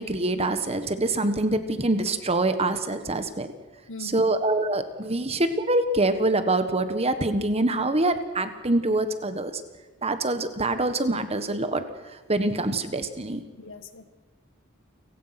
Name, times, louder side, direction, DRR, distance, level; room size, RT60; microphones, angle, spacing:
voice 1, 0.0-3.5 4.0-9.6 10.0-11.8 12.3-13.4, right 2 dB, 30° right, 10 dB, 1.4 m, -25 dB
voice 2, 3.9-4.4 13.6-14.0, left 2 dB, 60° left, 10 dB, 1.6 m, -41 dB
29.0 x 17.0 x 6.0 m, 1.2 s
head